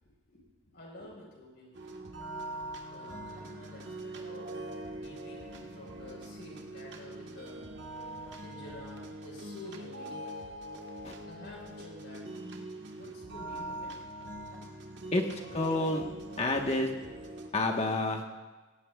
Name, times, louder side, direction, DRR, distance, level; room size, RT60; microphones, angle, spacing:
voice 1, 0.7-2.0 2.8-4.5 5.0-7.7 8.4-10.2 11.3-12.5 12.9-14.0 15.0-15.7, left 1 dB, 60° left, -1 dB, 4.7 m, -50 dB
sound 1, 1.7-17.5, right 1 dB, 60° right, 1.5 m, -43 dB
voice 2, 15.5-16.0 16.4-16.9 17.5-18.3, left 2 dB, 35° left, 2 dB, 1.3 m, -28 dB
18.0 x 17.5 x 2.4 m, 1.3 s
head